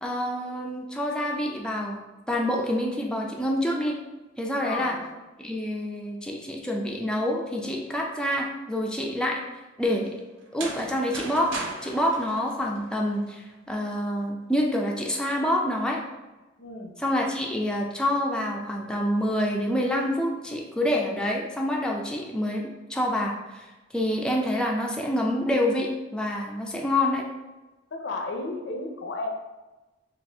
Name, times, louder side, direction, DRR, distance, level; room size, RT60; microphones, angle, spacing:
voice 1, 0.0-4.0 4.4-5.0 5.4-9.4 9.8-10.2 10.5-11.5 11.8-16.0 17.0-23.7 23.9-27.2, left 1 dB, 5° left, -1 dB, 0.3 m, -27 dB
voice 2, 4.6-5.0 16.6-17.0 27.9-29.3, left 2 dB, 75° left, 3 dB, 0.6 m, -33 dB
sound 1, 10.4-13.3, right 3 dB, 85° right, 0.6 m, -37 dB
4.2 x 2.4 x 3.4 m, 1.1 s
head